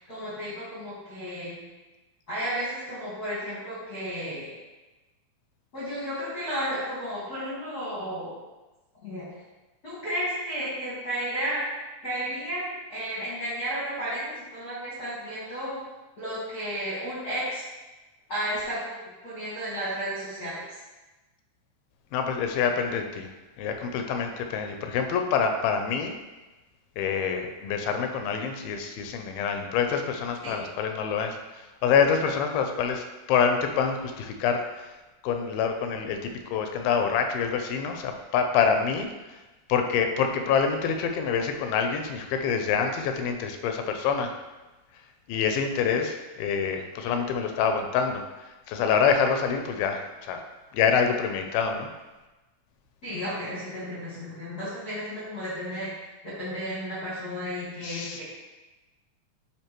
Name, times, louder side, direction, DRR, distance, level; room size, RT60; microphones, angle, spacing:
voice 1, 0.0-1.6 2.3-4.5 5.7-8.3 9.0-9.3 9.8-11.6 12.0-15.8 16.2-17.6 18.3-19.0 19.2-20.8 30.4-30.6 53.0-55.9 56.2-58.2, equal, 45° left, -10 dB, 1.2 m, -33 dB
voice 2, 22.1-23.3 23.6-26.1 27.0-34.9 35.2-39.4 39.7-44.4 45.3-48.2 48.7-50.4 50.7-51.9 57.8-58.2, left 6 dB, 80° left, 5 dB, 2.4 m, -26 dB
9.9 x 3.3 x 3.0 m, 1.1 s
omnidirectional pair, 4.3 m